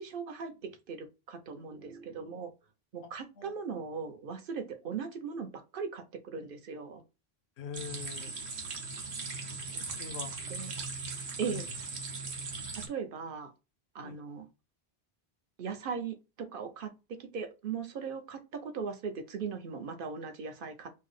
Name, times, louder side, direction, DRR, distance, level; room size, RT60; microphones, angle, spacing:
voice 1, 0.0-2.5 2.9-7.0 10.5-10.7 11.4-11.7 12.7-13.5 13.9-14.5 15.6-20.9, right 6 dB, 60° right, 0.8 m, -39 dB
voice 2, 7.6-8.3 9.7-10.4 11.0-11.1 11.4-11.7 14.0-14.2, left 7 dB, 85° left, 0.9 m, -43 dB
sound 1, 7.7-12.9, right 4 dB, 85° right, 1.2 m, -39 dB
4.5 x 2.0 x 3.1 m
omnidirectional pair, 1.1 m